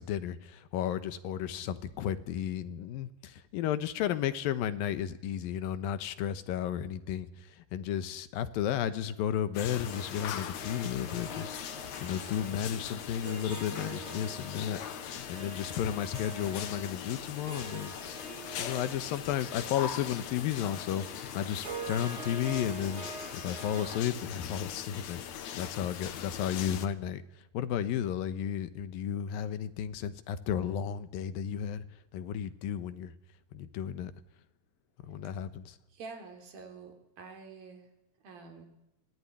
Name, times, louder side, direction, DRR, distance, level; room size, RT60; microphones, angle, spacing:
voice 1, 0.0-11.6 12.0-17.9 18.2-21.1 21.3-23.1 23.3-25.3 25.5-27.2 27.5-31.8 32.1-33.1 33.5-34.1 35.0-35.8, left 9 dB, 85° left, 12 dB, 2.9 m, -33 dB
sound 1, 9.5-26.9, left 9 dB, 65° left, 2.2 m, -41 dB
Harp, 9.9-24.0, right 4 dB, 35° right, 1.1 m, -46 dB
voice 2, 35.9-37.9 38.2-38.7, right 4 dB, 90° right, 4 dB, 5.2 m, -47 dB
23.5 x 18.0 x 10.0 m, 0.88 s
omnidirectional pair, 4.0 m